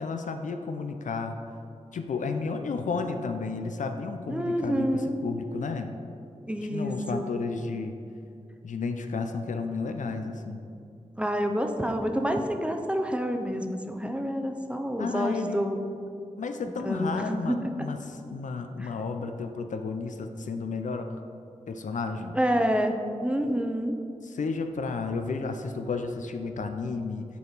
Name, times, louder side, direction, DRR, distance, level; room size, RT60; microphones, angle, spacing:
voice 1, 0.0-1.4 1.9-5.9 6.7-8.0 8.6-10.7 15.0-15.9 16.4-21.2 21.7-22.4 24.2-27.3, left 4 dB, 75° left, 6 dB, 0.5 m, -32 dB
voice 2, 4.3-5.2 6.5-7.3 11.2-15.8 16.8-17.6 18.8-18.9 22.3-22.9 23.2-24.0, equal, 10° right, 5 dB, 0.6 m, -28 dB
8.2 x 4.5 x 4.0 m, 2.5 s
cardioid pair, 55°, 13 cm